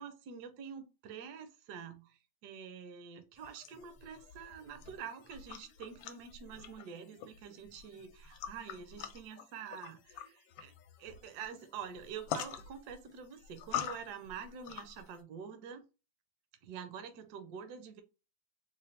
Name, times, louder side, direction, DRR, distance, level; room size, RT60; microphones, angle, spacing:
voice 1, 0.0-10.7 11.0-15.8 16.6-18.0, right 7 dB, 70° right, 1.1 m, -47 dB
sound 1, 3.4-15.2, left 9 dB, 80° left, 1.3 m, -46 dB
4.0 x 2.2 x 3.2 m
omnidirectional pair, 2.1 m